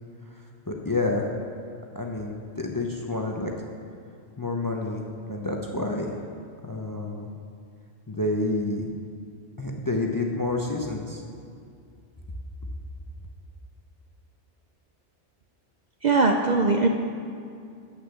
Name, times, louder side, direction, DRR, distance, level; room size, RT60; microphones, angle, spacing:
voice 1, 0.7-1.3 1.9-3.5 4.4-6.1 6.6-7.3 8.1-8.9 9.6-11.2, left 2 dB, 25° left, 1 dB, 0.5 m, -29 dB
voice 2, 16.0-16.9, right 3 dB, 50° right, 3 dB, 0.6 m, -20 dB
8.3 x 6.4 x 7.0 m, 2.4 s
omnidirectional pair, 1.2 m